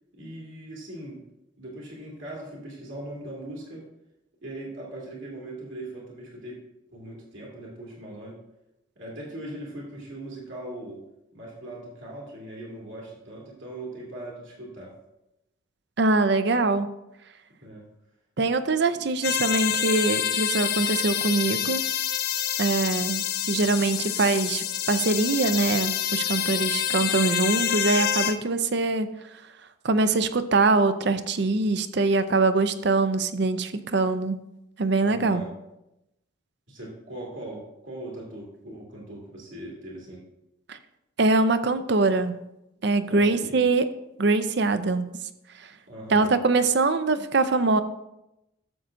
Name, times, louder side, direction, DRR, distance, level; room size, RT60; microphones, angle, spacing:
voice 1, 0.1-1.2 1.6-3.9 4.4-6.6 6.9-8.4 9.0-11.0 11.3-14.9 17.6-17.9 18.9-19.0 35.0-35.5 36.7-40.2 43.1-43.6 45.9-46.3, right 1 dB, 70° right, -3 dB, 2.5 m, -40 dB
voice 2, 16.0-16.9 18.4-21.8 22.6-29.1 29.8-34.4 34.8-35.4 40.7-40.8 41.2-42.3 42.8-43.8 44.2-45.1 46.1-47.8, right 3 dB, 55° right, 11 dB, 0.5 m, -23 dB
sound 1, 19.2-28.4, left 10 dB, 45° left, 0.4 m, -27 dB
12.5 x 7.5 x 2.6 m, 0.89 s
head